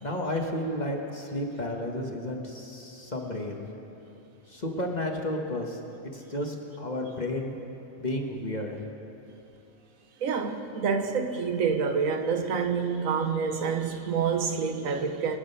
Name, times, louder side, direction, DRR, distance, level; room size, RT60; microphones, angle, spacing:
voice 1, 0.0-3.6 4.5-5.8 6.0-7.5 8.0-8.8, left 1 dB, 30° left, 1.3 m, -32 dB
voice 2, 10.2-15.4, right 5 dB, 70° right, 1.3 m, -27 dB
25.0 x 8.8 x 5.6 m
omnidirectional pair, 1.5 m